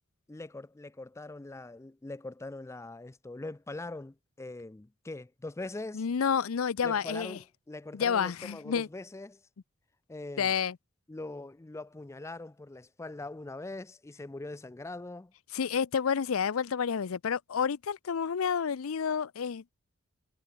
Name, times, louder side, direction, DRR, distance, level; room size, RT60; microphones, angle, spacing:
voice 1, 0.3-6.1 6.8-9.4 10.1-10.5 11.1-15.3, left 2 dB, 15° left, 0.4 m, -42 dB
voice 2, 5.9-7.4 7.9-8.9 10.4-10.8 15.5-19.7, left 7 dB, 80° left, 0.5 m, -29 dB
head